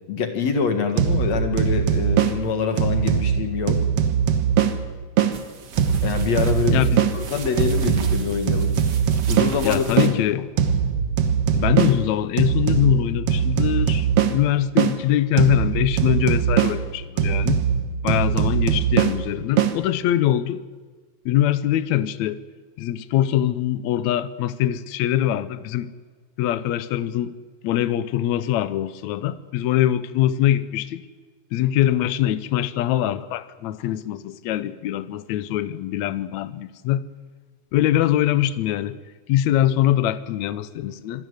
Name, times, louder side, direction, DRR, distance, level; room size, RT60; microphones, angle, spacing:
voice 1, 0.1-3.8 6.0-6.9 7.1-8.7 9.3-10.4, left 5 dB, 55° left, 7 dB, 2.5 m, -25 dB
sound 1, 1.0-5.4 5.8-10.2 10.6-15.0 15.4-19.8, right 8 dB, 60° right, 1.7 m, -22 dB
sound 2, 5.3-10.1, right 5 dB, 85° right, 0.9 m, -35 dB
voice 2, 6.7-7.0 9.6-10.5 11.5-17.6 18.0-20.6 21.2-22.4 22.8-25.9 26.4-27.3 27.6-31.0 31.5-37.0 37.7-39.0 39.3-41.3, left 12 dB, 80° left, 14 dB, 1.6 m, -23 dB
25.0 x 13.0 x 9.5 m, 1.4 s
omnidirectional pair, 4.1 m